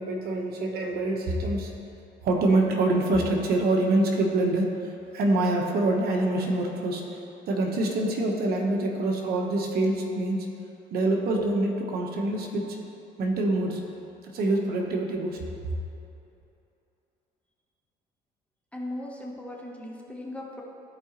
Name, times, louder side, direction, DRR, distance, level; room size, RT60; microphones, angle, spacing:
voice 1, 0.0-1.7 2.2-4.8 5.1-7.2 7.5-10.5 10.9-12.8 13.2-13.8 14.2-15.4, right 2 dB, 65° right, 1 dB, 1.1 m, -25 dB
voice 2, 18.7-20.6, left 1 dB, 5° left, -2 dB, 1.1 m, -38 dB
14.0 x 4.8 x 3.0 m, 2.8 s
cardioid pair, 110°, 17 cm